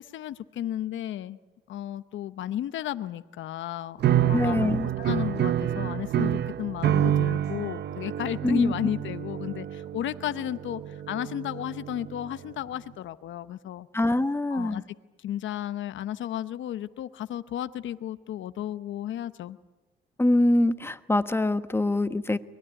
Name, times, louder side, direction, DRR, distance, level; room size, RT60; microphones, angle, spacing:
voice 1, 0.0-1.4 1.7-13.9 14.5-19.6, left 11 dB, 75° left, 13 dB, 0.9 m, -33 dB
sound 1, 4.0-12.3, right 11 dB, 60° right, 0.8 m, -28 dB
voice 2, 4.3-4.9 8.4-8.7 13.9-14.8 20.2-22.4, left 1 dB, 10° left, 11 dB, 1.2 m, -24 dB
23.5 x 20.0 x 9.9 m, 1.1 s
cardioid pair, 90°, 20 cm